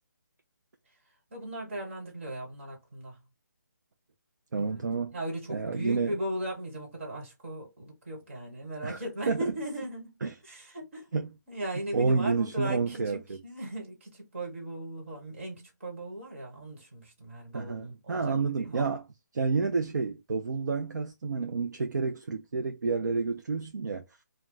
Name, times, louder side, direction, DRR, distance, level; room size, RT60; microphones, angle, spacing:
voice 1, 1.3-3.2 4.6-4.8 5.1-11.2 11.5-18.9, right 1 dB, 45° right, 1.5 m, -38 dB
voice 2, 4.5-5.2 5.5-6.1 8.8-9.0 9.3-9.5 10.2-10.3 11.1-11.3 11.9-13.4 17.5-19.0 19.3-24.1, right 4 dB, 70° right, 0.5 m, -29 dB
2.3 x 2.2 x 3.8 m
hypercardioid pair, 170°, 10 cm